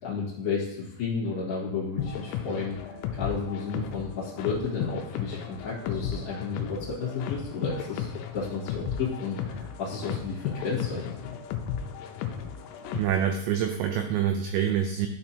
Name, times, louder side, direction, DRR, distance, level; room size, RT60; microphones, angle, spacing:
voice 1, 0.0-2.8 3.1-11.3, left 4 dB, 60° left, -10 dB, 2.0 m, -32 dB
sound 1, 2.0-13.3, left 8 dB, 90° left, 3.1 m, -35 dB
voice 2, 12.9-15.1, right 9 dB, 90° right, 5 dB, 2.4 m, -26 dB
12.0 x 4.4 x 2.8 m, 0.84 s
omnidirectional pair, 5.5 m